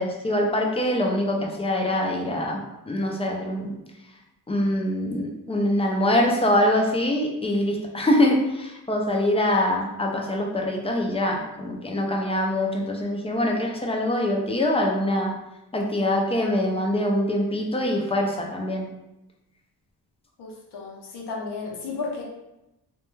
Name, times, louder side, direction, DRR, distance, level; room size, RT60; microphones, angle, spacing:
voice 1, 0.0-2.6 2.9-3.7 4.5-15.3 15.7-18.8, left 1 dB, 15° left, 0 dB, 0.3 m, -24 dB
voice 2, 20.4-22.2, left 4 dB, 80° left, -2 dB, 0.7 m, -33 dB
2.2 x 2.2 x 3.0 m, 0.93 s
wide cardioid pair, 100°, 39 cm